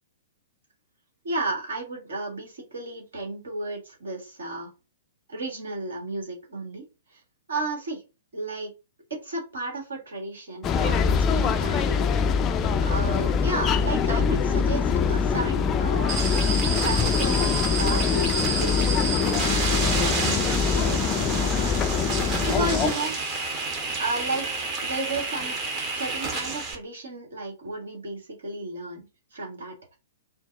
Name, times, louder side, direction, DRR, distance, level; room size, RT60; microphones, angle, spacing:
voice 1, 1.2-4.7 5.3-6.8 7.1-7.2 7.5-8.0 8.3-8.7 9.1-12.1 12.8-16.2 16.8-21.7 22.0-23.2 24.0-24.5 24.8-25.6 26.0-29.8, right 2 dB, 60° right, 1 dB, 1.6 m, -33 dB
sound 1, 10.6-22.9, left 6 dB, 25° left, 0.4 m, -23 dB
sound 2, 16.1-26.7, right 3 dB, 25° right, 0.9 m, -29 dB
4.4 x 2.1 x 3.8 m, 0.29 s
figure-of-eight pair, 110°, 0 cm